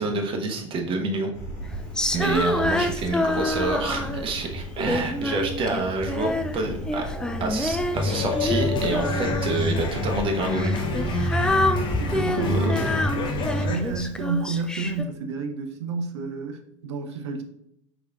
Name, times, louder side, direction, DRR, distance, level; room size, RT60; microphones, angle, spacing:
voice 1, 0.0-1.3 2.1-7.1 7.4-11.5 12.3-12.9, right 3 dB, 35° right, 2 dB, 0.9 m, -28 dB
sound 1, 1.3-14.0, right 1 dB, 60° left, 1.7 m, -35 dB
Female singing, 2.0-4.3 4.9-6.6 6.9-9.7 10.5-15.0, left 2 dB, 5° left, 0.3 m, -27 dB
voice 2, 2.2-2.6 12.0-12.8 13.2-17.4, right 4 dB, 65° right, 7 dB, 0.6 m, -30 dB
sound 2, 7.9-13.8, left 2 dB, 30° left, 0.7 m, -27 dB
4.8 x 4.0 x 2.4 m, 0.76 s
figure-of-eight pair, 70°, 16 cm